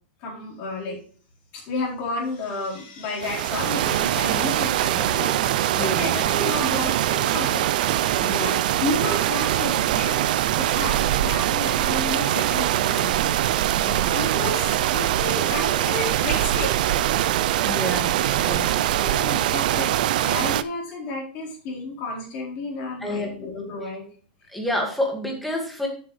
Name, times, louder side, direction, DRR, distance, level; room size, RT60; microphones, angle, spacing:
voice 1, 0.2-1.0 1.5-13.4 13.9-16.9 18.5-24.0, left 2 dB, 30° left, -4 dB, 4.3 m, -32 dB
sound 1, 3.2-20.6, right 13 dB, 55° right, 0.5 m, -23 dB
voice 2, 5.7-6.1 8.2-8.6 13.7-14.1 17.7-18.1 18.4-18.8 23.0-23.3 24.5-25.9, left 1 dB, ahead, 0 dB, 2.0 m, -29 dB
12.0 x 7.7 x 3.2 m, 0.43 s
supercardioid pair, 175°, 5 cm